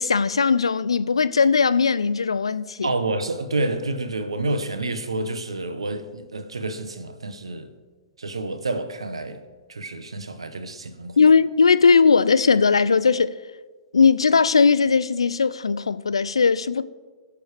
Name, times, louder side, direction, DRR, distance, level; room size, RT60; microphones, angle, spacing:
voice 1, 0.0-2.9 11.2-13.4 13.9-16.8, left 5 dB, 70° left, 0.4 m, -18 dB
voice 2, 2.8-7.7 8.2-9.4 9.7-11.2, right 2 dB, 75° right, 0.8 m, -29 dB
20.5 x 6.9 x 3.3 m
figure-of-eight pair, 110°, 3 cm